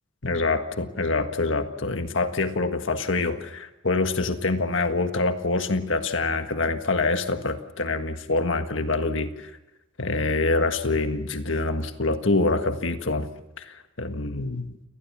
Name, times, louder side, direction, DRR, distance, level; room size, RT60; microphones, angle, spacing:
voice 1, 0.2-9.5 10.0-13.3 13.6-14.7, left 3 dB, 70° left, 8 dB, 1.7 m, -25 dB
28.5 x 20.0 x 7.2 m, 1.0 s
head